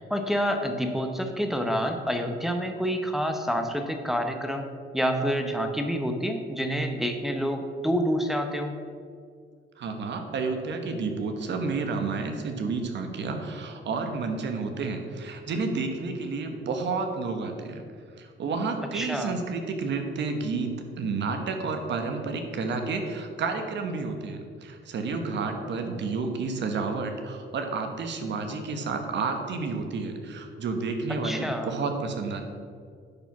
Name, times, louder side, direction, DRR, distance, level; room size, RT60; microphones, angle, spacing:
voice 1, 0.0-4.7 4.9-8.8 18.9-19.4 31.2-31.7, equal, ahead, 4 dB, 0.9 m, -28 dB
voice 2, 9.8-17.8 18.2-32.4, right 4 dB, 65° right, 5 dB, 1.3 m, -30 dB
10.0 x 4.9 x 5.9 m, 2.2 s
cardioid pair, 90°, 20 cm